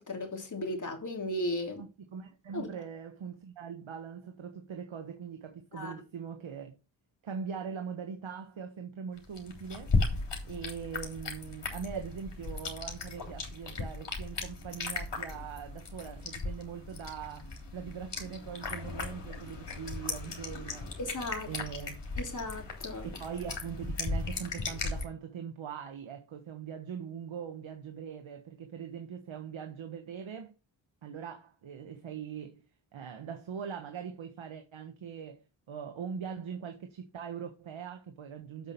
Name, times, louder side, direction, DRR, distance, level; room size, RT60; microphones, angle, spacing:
voice 1, 0.0-1.8 2.5-2.7 5.7-5.9 21.0-21.5 22.2-23.1, left 1 dB, 40° left, 3.5 m, -36 dB
voice 2, 1.8-6.7 7.2-20.9 21.5-22.0 23.0-30.5 31.0-32.6 32.9-38.7, right 7 dB, 75° right, 1.5 m, -41 dB
sound 1, 9.2-25.0, left 3 dB, 60° left, 3.5 m, -36 dB
7.9 x 6.1 x 5.3 m
cardioid pair, 65°, 47 cm